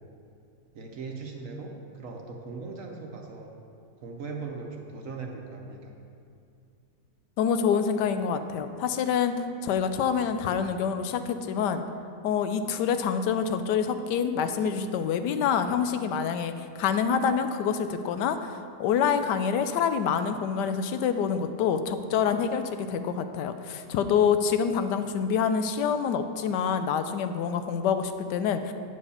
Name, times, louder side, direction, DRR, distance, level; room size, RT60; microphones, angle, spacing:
voice 1, 0.7-3.5 4.0-5.9, right 4 dB, 55° right, 1 dB, 1.2 m, -39 dB
voice 2, 7.4-11.8 12.2-28.7, left 7 dB, 90° left, 9 dB, 1.2 m, -26 dB
8.7 x 4.9 x 6.9 m, 2.5 s
omnidirectional pair, 1.8 m